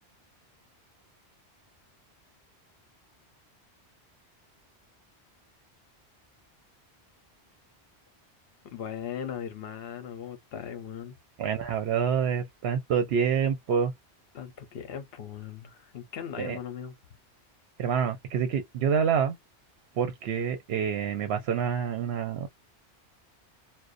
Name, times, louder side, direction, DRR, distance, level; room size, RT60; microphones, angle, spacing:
voice 1, 8.6-11.2 14.3-16.9, left 8 dB, 65° left, 0.9 m, -38 dB
voice 2, 11.4-13.9 16.4-16.6 17.8-19.4 20.0-22.5, right 7 dB, 70° right, 0.8 m, -27 dB
2.4 x 2.1 x 2.4 m
omnidirectional pair, 1.1 m